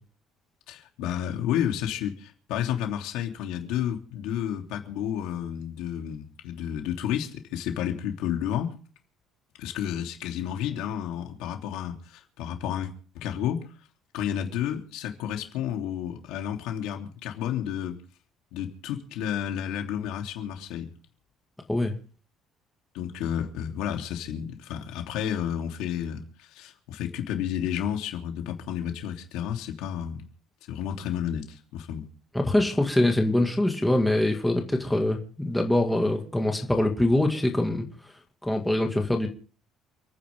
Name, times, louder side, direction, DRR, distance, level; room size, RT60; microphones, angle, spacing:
voice 1, 0.7-8.7 9.6-13.7 14.1-18.0 18.5-20.9 22.9-30.2 30.7-32.1, left 9 dB, 85° left, 3.1 m, -31 dB
voice 2, 32.3-37.9 38.4-39.3, left 1 dB, 5° left, 2.0 m, -24 dB
29.0 x 10.0 x 3.6 m
cardioid pair, 175°, 0 cm